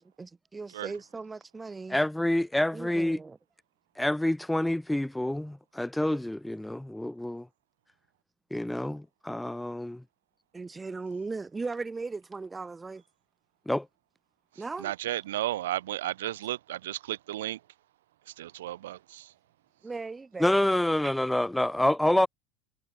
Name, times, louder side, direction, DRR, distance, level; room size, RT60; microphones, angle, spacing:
voice 1, 0.0-2.0 2.7-3.4 10.5-13.0 14.6-14.9 19.8-20.5 21.0-21.3, right 4 dB, 15° right, 3.1 m, -38 dB
voice 2, 1.9-3.2 4.0-7.5 8.5-10.0 13.7-13.9 20.4-22.3, left 1 dB, 5° left, 0.6 m, -27 dB
voice 3, 14.8-17.6 18.3-19.3, right 14 dB, 80° right, 2.9 m, -34 dB
hypercardioid pair, 90°, 0 cm